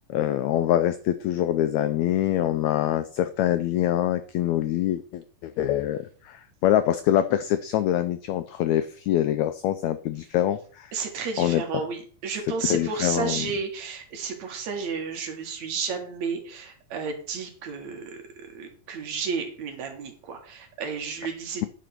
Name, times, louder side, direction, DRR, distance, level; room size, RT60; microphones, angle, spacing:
voice 1, 0.1-10.9 11.4-11.6 12.6-13.5, left 12 dB, 90° left, 11 dB, 1.5 m, -25 dB
voice 2, 10.9-18.2 18.5-21.7, right 5 dB, 60° right, 4 dB, 2.7 m, -32 dB
9.6 x 5.1 x 5.8 m, 0.43 s
omnidirectional pair, 3.8 m